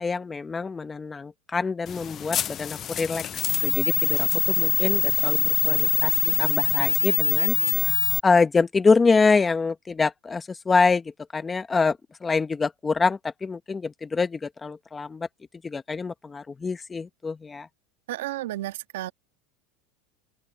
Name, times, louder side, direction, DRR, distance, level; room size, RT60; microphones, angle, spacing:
voice 1, 0.0-7.6 7.9-15.3 15.6-17.7, left 4 dB, 15° left, 1.1 m, -25 dB
sound 1, 1.9-8.2, left 10 dB, 35° left, 0.6 m, -23 dB
voice 2, 18.1-19.1, right 15 dB, 85° right, 1.5 m, -32 dB
open air
supercardioid pair, 125°, 0 cm